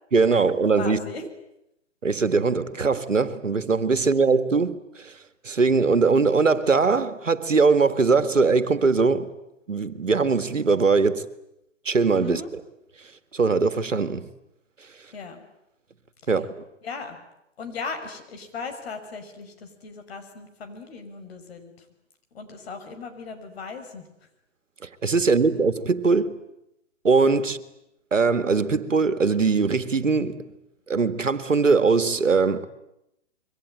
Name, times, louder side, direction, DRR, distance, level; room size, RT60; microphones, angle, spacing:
voice 1, 0.1-1.0 2.0-5.2 5.4-9.3 9.7-11.3 11.9-12.4 13.3-14.2 16.3-16.6 25.0-26.4 27.0-27.6 28.1-30.4 30.9-32.7, right 4 dB, 85° right, 2.0 m, -21 dB
voice 2, 0.8-1.2 12.2-12.5 15.1-15.4 16.2-16.4 16.8-17.2 17.6-21.8 22.3-24.1, left 4 dB, 55° left, 6.0 m, -37 dB
27.0 x 23.5 x 9.0 m
figure-of-eight pair, 130°, 37 cm